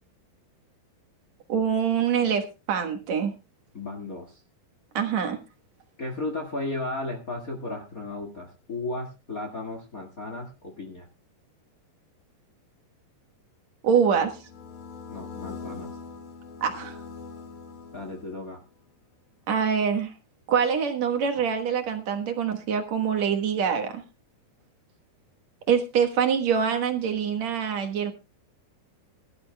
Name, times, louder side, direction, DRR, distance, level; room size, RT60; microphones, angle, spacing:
voice 1, 1.5-3.3 4.9-5.4 13.8-14.4 16.6-17.0 19.5-20.1 20.5-24.0 25.7-28.1, right 7 dB, 60° right, 5 dB, 1.9 m, -25 dB
voice 2, 3.7-4.4 6.0-11.1 15.1-15.9 17.9-18.6, left 2 dB, 70° left, 3 dB, 0.8 m, -34 dB
sound 1, 14.0-18.7, left 4 dB, 55° left, 3.3 m, -42 dB
22.0 x 13.0 x 2.2 m, 0.28 s
omnidirectional pair, 5.0 m